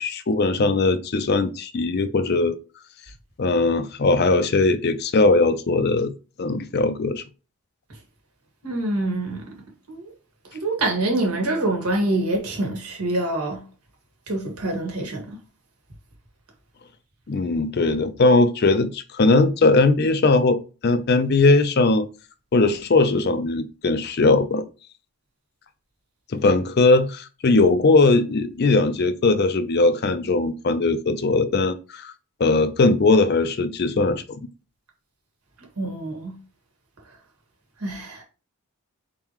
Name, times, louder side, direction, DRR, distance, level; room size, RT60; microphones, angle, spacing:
voice 1, 0.0-2.6 3.4-6.1 6.4-7.2 17.3-22.1 22.5-24.6 26.3-32.1 32.4-34.2, left 3 dB, 45° left, 0.5 m, -19 dB
voice 2, 8.6-9.5 9.9-10.1 10.5-13.6 14.3-15.4 35.8-36.3 37.8-38.2, right 2 dB, 90° right, 1.6 m, -25 dB
4.5 x 3.8 x 3.0 m
head